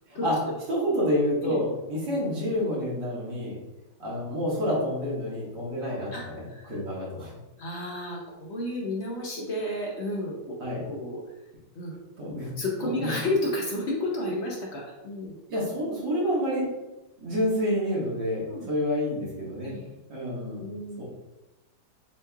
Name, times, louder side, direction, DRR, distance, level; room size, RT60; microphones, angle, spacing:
voice 1, 0.7-3.6 4.0-6.1 6.4-6.5 6.7-7.3 10.6-10.8 12.2-12.5 12.8-13.1 15.5-16.7 17.2-19.7 20.1-20.6 21.0-21.1, equal, 85° right, -6 dB, 2.3 m, -28 dB
voice 2, 6.1-6.8 7.6-10.6 10.8-11.2 11.7-12.0 12.6-15.4 18.5-18.7 19.6-19.9 20.6-21.0, left 1 dB, 55° left, -2 dB, 0.7 m, -32 dB
7.2 x 2.9 x 2.3 m, 1.0 s
omnidirectional pair, 1.9 m